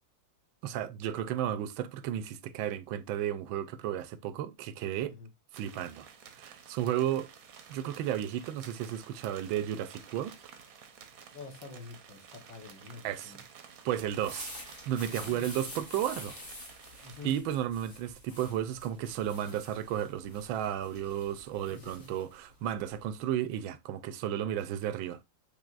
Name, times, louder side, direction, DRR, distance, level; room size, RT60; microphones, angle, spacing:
voice 1, 0.6-5.1 5.5-6.1 6.3-7.3 7.7-10.4 13.0-13.4 13.8-14.5 14.9-16.4 17.2-25.2, right 11 dB, 85° right, 1.4 m, -33 dB
sound 1, 5.5-17.4, right 7 dB, 60° right, 1.0 m, -52 dB
voice 2, 11.3-13.4 15.2-15.5 17.0-17.3 21.7-22.1, left 4 dB, 70° left, 1.9 m, -47 dB
sound 2, 14.1-23.3, left 1 dB, 40° left, 3.5 m, -48 dB
6.8 x 3.2 x 2.4 m
omnidirectional pair, 2.1 m